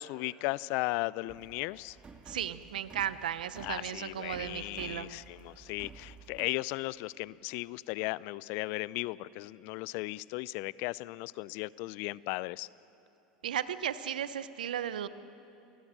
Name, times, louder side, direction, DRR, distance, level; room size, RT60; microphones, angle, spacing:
voice 1, 0.0-2.0 3.6-12.7, left 21 dB, 55° left, 21 dB, 0.5 m, -36 dB
sound 1, 1.3-6.5, right 5 dB, 25° right, 1.9 m, -53 dB
voice 2, 2.3-5.1 13.4-15.1, right 10 dB, 80° right, 14 dB, 0.9 m, -35 dB
29.0 x 20.0 x 7.5 m, 2.8 s
hypercardioid pair, 90°, 4 cm